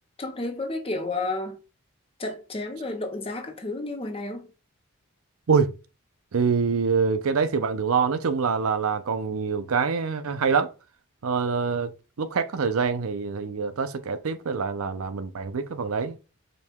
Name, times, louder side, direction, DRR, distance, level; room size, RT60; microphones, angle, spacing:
voice 1, 0.2-1.6 2.2-4.5, left 2 dB, 25° left, 0.7 m, -31 dB
voice 2, 6.3-10.7 11.2-16.2, right 5 dB, 85° right, 0.5 m, -25 dB
5.3 x 2.3 x 4.4 m
head